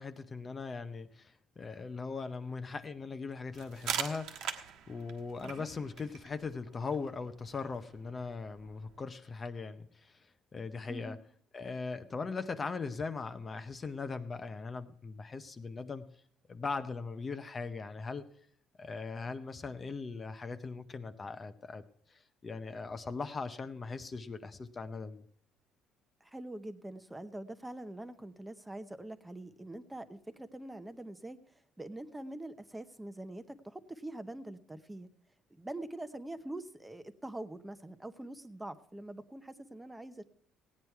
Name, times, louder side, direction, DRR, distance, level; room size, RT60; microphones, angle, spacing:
voice 1, 0.0-4.6 4.9-10.3 10.5-11.2 11.5-16.2 16.5-18.2 18.8-21.8 22.1-25.3, left 4 dB, 25° left, 10 dB, 0.7 m, -40 dB
sound 1, 3.5-9.1, right 8 dB, 75° right, 1.4 m, -43 dB
voice 2, 10.9-11.2 26.2-35.1 35.5-40.2, right 1 dB, 10° right, 10 dB, 0.8 m, -44 dB
16.5 x 9.4 x 4.6 m, 0.62 s
cardioid pair, 125°, 0 cm